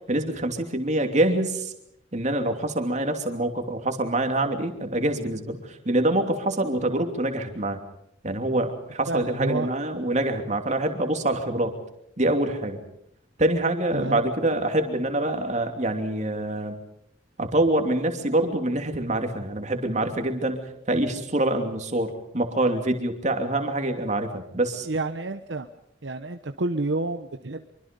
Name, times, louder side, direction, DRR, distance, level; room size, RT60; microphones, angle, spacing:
voice 1, 0.1-1.7 2.1-7.8 8.2-11.7 12.2-12.8 13.4-16.8 17.4-20.6 20.9-24.9, right 1 dB, 40° right, 5 dB, 2.9 m, -25 dB
voice 2, 9.1-9.7 13.9-14.2 24.8-25.7 26.0-27.7, right 2 dB, 65° right, 7 dB, 1.0 m, -29 dB
25.5 x 24.0 x 5.3 m, 0.78 s
head